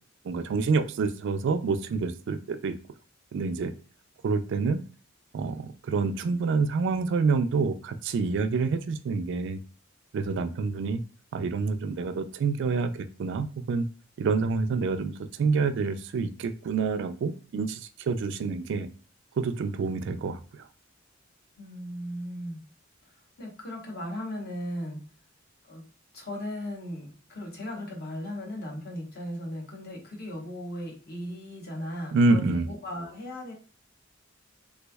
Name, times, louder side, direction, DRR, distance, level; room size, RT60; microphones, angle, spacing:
voice 1, 0.2-2.8 3.3-3.7 4.2-4.8 5.3-9.6 10.1-11.0 11.3-13.8 14.2-18.9 19.4-20.4 32.1-32.7, right 4 dB, 65° right, 9 dB, 0.3 m, -27 dB
voice 2, 21.6-22.6 23.0-25.0 25.6-25.9 26.1-33.5, left 1 dB, 50° left, 0 dB, 1.0 m, -37 dB
3.3 x 3.1 x 2.2 m, 0.36 s
head